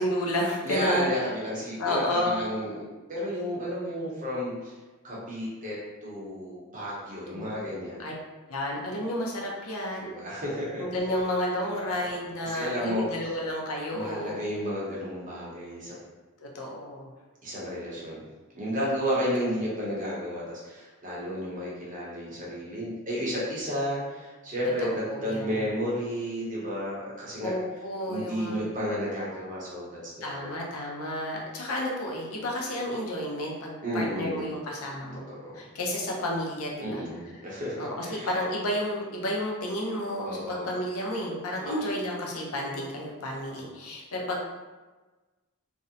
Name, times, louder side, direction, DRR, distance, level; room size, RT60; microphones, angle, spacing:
voice 1, 0.0-1.1 1.8-2.5 7.3-7.5 8.0-8.1 8.5-10.1 10.8-14.5 16.4-17.1 24.8-25.5 27.4-28.6 30.2-35.3 35.5-37.0 37.4-37.5 37.8-44.4, left 1 dB, 70° left, -2 dB, 0.6 m, -31 dB
voice 2, 0.6-2.8 3.1-4.7 5.0-8.0 10.0-10.8 11.6-12.2 12.5-13.1 13.9-15.9 17.4-18.2 18.5-27.5 28.1-30.5 33.8-34.4 35.3-35.6 36.8-38.3 40.2-40.7 41.6-41.8 43.5-43.7, equal, 35° right, -6 dB, 0.7 m, -32 dB
2.5 x 2.1 x 2.6 m, 1.2 s
head